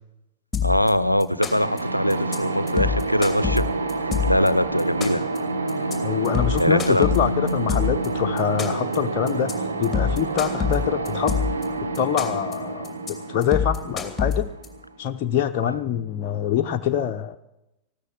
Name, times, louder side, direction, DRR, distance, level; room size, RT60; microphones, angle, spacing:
sound 1, 0.5-0.9 1.2-1.8 2.1-2.4 2.7-4.5 4.8-5.4 5.7-5.9 6.2-8.1 8.4-9.0 9.3-9.5 9.8-11.6 11.9-12.5 12.8-13.1 13.4-14.7, left 7 dB, 10° left, 2.7 m, -25 dB
voice 1, 0.6-3.6 4.3-5.3 6.6-7.1 15.7-15.8, equal, 90° left, 17 dB, 0.5 m, -22 dB
sound 2, 1.4-15.1, right 3 dB, 75° right, 1.4 m, -28 dB
voice 2, 6.0-9.5 9.8-11.4 11.8-14.5 15.0-17.4, left 9 dB, 40° left, 4 dB, 0.7 m, -25 dB
15.5 x 13.0 x 7.2 m, 0.89 s
figure-of-eight pair, 90°, 0 cm